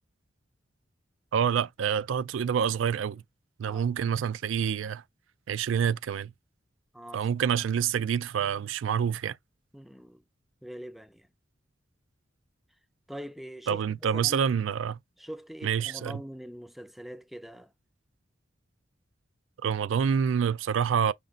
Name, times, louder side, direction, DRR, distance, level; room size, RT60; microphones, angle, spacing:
voice 1, 1.3-3.2 3.6-5.0 5.5-6.3 7.1-9.4 13.7-15.0 15.6-16.2 19.6-21.1, right 7 dB, 85° right, 0.4 m, -27 dB
voice 2, 6.9-7.3 9.7-10.2 10.6-11.3 13.1-14.5 15.2-17.7, equal, ahead, 0.3 m, -43 dB
5.2 x 3.7 x 2.4 m
head